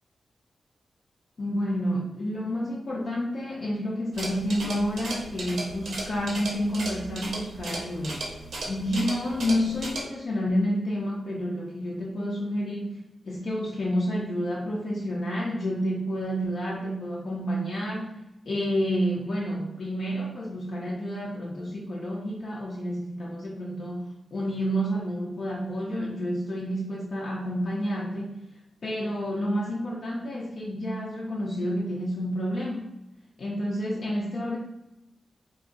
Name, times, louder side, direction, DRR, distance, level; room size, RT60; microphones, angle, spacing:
voice 1, 1.4-8.2 8.6-18.2 18.4-28.4 28.8-32.9 33.4-34.6, equal, 55° left, -5 dB, 0.5 m, -29 dB
sound 1, 4.1-10.0, right 2 dB, 85° right, 0.7 m, -36 dB
2.5 x 2.3 x 3.8 m, 0.93 s
wide cardioid pair, 130°, 0 cm